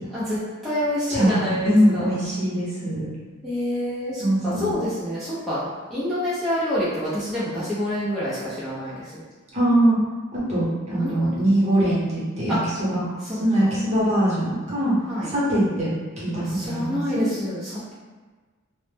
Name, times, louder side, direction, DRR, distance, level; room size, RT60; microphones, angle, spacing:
voice 1, 0.1-2.2 3.4-8.9 11.0-11.4 12.5-12.6 13.3-13.7 15.1-15.3 16.3-17.9, equal, ahead, -12 dB, 0.5 m, -27 dB
voice 2, 1.1-3.1 4.2-4.7 9.5-10.0 10.3-13.0 13.4-14.9 15.3-15.9 16.2-17.2, right 1 dB, 35° right, -8 dB, 0.8 m, -22 dB
2.0 x 2.0 x 3.2 m, 1.3 s
head